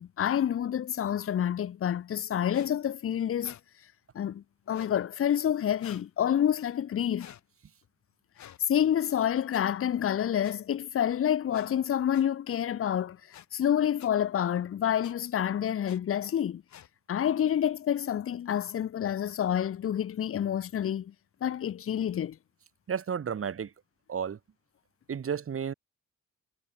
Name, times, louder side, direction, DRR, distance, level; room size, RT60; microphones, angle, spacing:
voice 1, 0.0-3.5 4.1-7.3 8.7-13.2 13.5-16.6 17.1-21.1 21.4-22.4, left 10 dB, 45° left, 0.9 m, -28 dB
sound 1, 2.5-2.7 3.4-3.6 4.6-5.0 5.8-6.1 7.2-7.4 8.3-8.6 9.5-9.6 10.4-10.5 11.5-11.7 12.1-12.2 13.3-13.5 14.0-14.1 15.0-15.1 15.8-16.0 16.7-16.9, left 10 dB, 65° left, 5.0 m, -49 dB
voice 2, 22.9-23.7 24.1-24.4 25.1-25.7, right 7 dB, 45° right, 3.5 m, -32 dB
cardioid pair, 90°, 30 cm